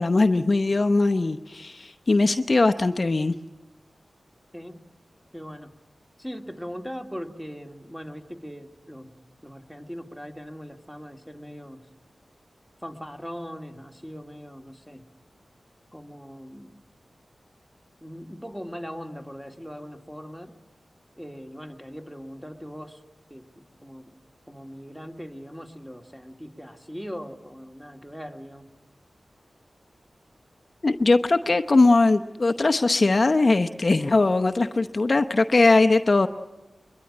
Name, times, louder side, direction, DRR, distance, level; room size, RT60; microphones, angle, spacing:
voice 1, 0.0-3.3 30.8-36.3, left 3 dB, 50° left, 8 dB, 0.8 m, -20 dB
voice 2, 5.3-5.7 6.2-9.2 9.4-11.9 12.8-15.1 15.9-16.7 18.0-20.5 21.2-23.0 23.3-24.1 24.5-28.7, equal, 5° right, 4 dB, 2.3 m, -40 dB
22.5 x 22.0 x 10.0 m, 1.0 s
cardioid pair, 50°, 0 cm